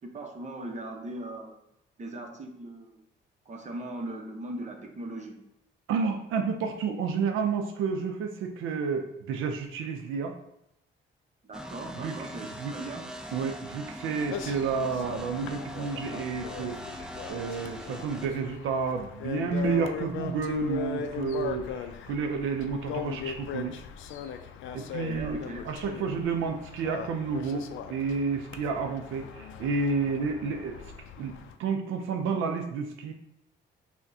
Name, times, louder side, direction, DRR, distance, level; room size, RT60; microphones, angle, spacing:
voice 1, 0.0-1.6 2.0-3.0 3.5-5.4 11.4-13.1 24.8-25.6, right 2 dB, 35° right, 2 dB, 0.8 m, -39 dB
voice 2, 5.9-10.4 12.0-12.3 12.6-12.7 13.3-23.8 24.7-25.4 25.6-30.8 31.2-33.1, right 5 dB, 85° right, 4 dB, 0.4 m, -30 dB
sound 1, 11.5-18.3, equal, 5° right, 0.4 m, -41 dB
sound 2, 14.3-31.6, left 8 dB, 75° left, 0.4 m, -39 dB
5.8 x 2.2 x 2.7 m, 0.78 s
cardioid pair, 90°, 20 cm